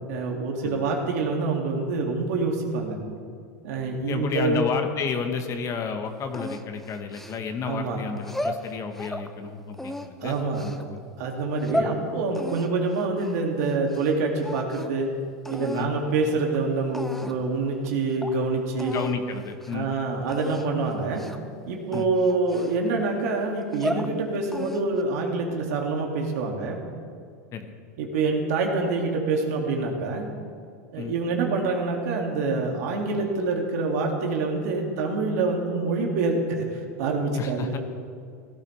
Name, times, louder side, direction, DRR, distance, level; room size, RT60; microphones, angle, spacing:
voice 1, 0.1-3.0 3.6-4.6 7.6-8.0 10.2-10.6 11.2-15.1 15.5-18.9 19.7-21.2 21.7-26.8 28.0-30.3 30.9-37.8, right 3 dB, 70° right, 1 dB, 2.4 m, -26 dB
voice 2, 4.1-11.0 11.8-11.9 15.7-15.9 18.9-19.9 21.9-22.1 27.5-27.7 31.0-31.1 37.3-37.8, left 6 dB, 35° left, 6 dB, 1.2 m, -32 dB
sound 1, 6.3-7.7 8.2-9.3 9.7-10.8 11.4-12.0 12.4-14.1 14.4-15.0 15.5-15.9 16.5-16.6 16.9-17.5 17.9-18.0 18.2-18.4 18.8-19.2 19.5-19.8 20.3-20.7 21.2-21.5 21.9-23.1 23.6-24.1 24.5-25.0, equal, 5° left, 0.7 m, -33 dB
16.5 x 13.0 x 3.4 m, 2.2 s
supercardioid pair, 120°, 9 cm